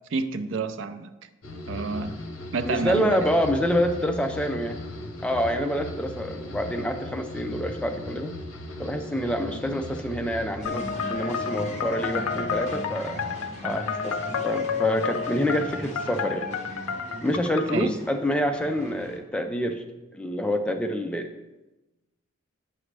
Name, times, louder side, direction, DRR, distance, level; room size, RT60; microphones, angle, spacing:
voice 1, 0.1-1.1 1.7-2.2 2.5-3.3 17.7-18.0, right 4 dB, 60° right, 12 dB, 0.4 m, -29 dB
sound 1, 1.4-14.8 15.1-15.7, left 1 dB, 60° left, 0.9 m, -39 dB
voice 2, 2.6-4.8 5.2-8.3 8.8-13.2 13.6-14.2 14.4-16.5 17.2-19.8 20.1-21.3, equal, 5° left, 5 dB, 0.4 m, -27 dB
sound 2, 10.6-19.2, equal, 30° left, 1.1 m, -39 dB
sound 3, 10.7-17.9, left 6 dB, 80° left, 0.5 m, -31 dB
8.8 x 6.2 x 3.3 m, 1.0 s
head